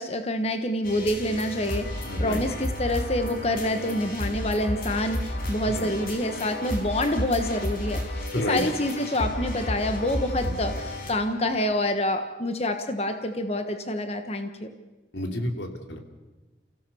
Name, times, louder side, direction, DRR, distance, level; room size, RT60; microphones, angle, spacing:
voice 1, 0.0-14.7, left 1 dB, 35° left, 7 dB, 1.3 m, -27 dB
sound 1, 0.8-11.1, left 1 dB, 55° left, 4.8 m, -32 dB
voice 2, 2.1-2.4 5.7-5.9 8.3-8.6 10.4-10.5 15.1-16.0, left 1 dB, 90° left, 5 dB, 3.0 m, -30 dB
29.5 x 16.0 x 7.0 m, 1.2 s
head